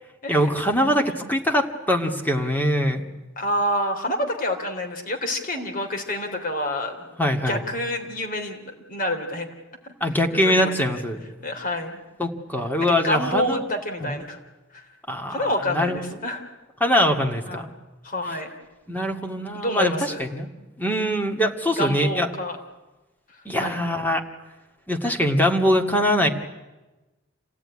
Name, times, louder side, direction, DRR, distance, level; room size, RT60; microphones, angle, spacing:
voice 1, 0.3-3.0 7.2-7.6 10.0-11.2 12.2-13.6 14.0-14.1 15.1-15.4 15.7-16.0 16.8-17.7 18.9-20.5 20.8-22.3 23.5-24.2 24.9-26.3, equal, 10° left, 3 dB, 2.2 m, -22 dB
voice 2, 3.4-7.2 7.4-9.5 9.8-10.2 10.4-11.0 11.4-12.0 12.8-14.4 14.7-14.8 15.3-16.4 17.5-17.7 18.0-18.5 19.5-20.3 21.8-22.6 23.6-23.8, left 1 dB, 45° left, 4 dB, 3.5 m, -28 dB
27.5 x 17.5 x 9.9 m, 1.1 s
head